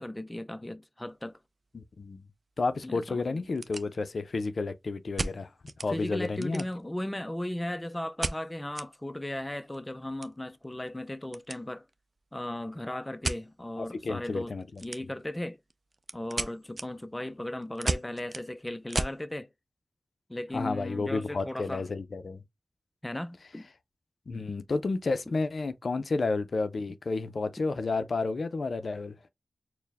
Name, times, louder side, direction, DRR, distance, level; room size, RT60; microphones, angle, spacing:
voice 1, 0.0-1.4 2.8-3.4 5.9-11.9 12.3-14.5 14.8-15.6 16.1-19.5 20.3-21.8 23.0-23.7, left 1 dB, 20° left, 0.4 m, -36 dB
sound 1, 1.1-1.3 1.7-1.8 2.4-2.5 2.7-2.8 3.3-4.3 5.2-5.9 6.2-7.0 8.2-8.9 9.2-9.3 9.6-11.6 11.9-12.2 13.2-13.4 14.8-15.3 15.7-19.2, right 2 dB, 50° right, 0.4 m, -35 dB
voice 2, 1.7-2.3 2.6-5.5 5.8-6.6 13.8-14.8 20.5-22.4 24.3-29.1, left 3 dB, 75° left, 0.4 m, -31 dB
4.4 x 2.1 x 3.4 m
cardioid pair, 45°, 0 cm